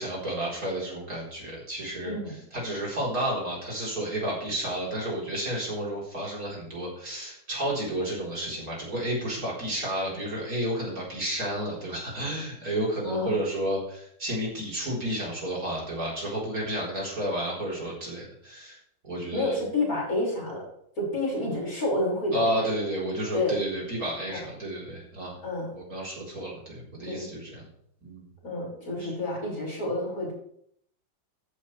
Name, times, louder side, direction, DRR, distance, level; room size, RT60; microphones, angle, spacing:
voice 1, 0.0-2.2 2.5-18.8 19.0-19.6 22.3-25.3 25.7-27.6 28.0-28.3 29.0-29.1, right 1 dB, 50° right, -4 dB, 4.7 m, -31 dB
voice 2, 13.1-13.4 19.3-20.6 21.0-22.7 23.3-23.6 24.3-24.4 25.4-25.7 27.0-27.3 28.4-30.3, left 2 dB, 50° left, -5 dB, 6.4 m, -29 dB
14.5 x 11.0 x 3.4 m, 0.68 s
omnidirectional pair, 2.0 m